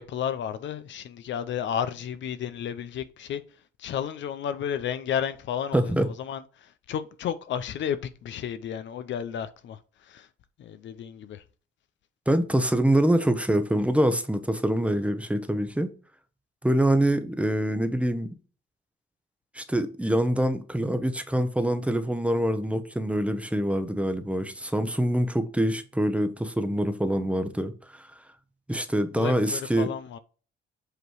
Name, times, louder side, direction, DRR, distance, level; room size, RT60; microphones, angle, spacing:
voice 1, 0.0-3.4 3.8-10.3 10.6-11.4 29.2-30.2, left 9 dB, 65° left, 0.7 m, -32 dB
voice 2, 5.7-6.1 12.3-15.9 16.6-18.3 19.5-28.1 28.7-29.9, right 1 dB, 5° right, 0.8 m, -25 dB
8.0 x 3.0 x 4.8 m
cardioid pair, 90°, 20 cm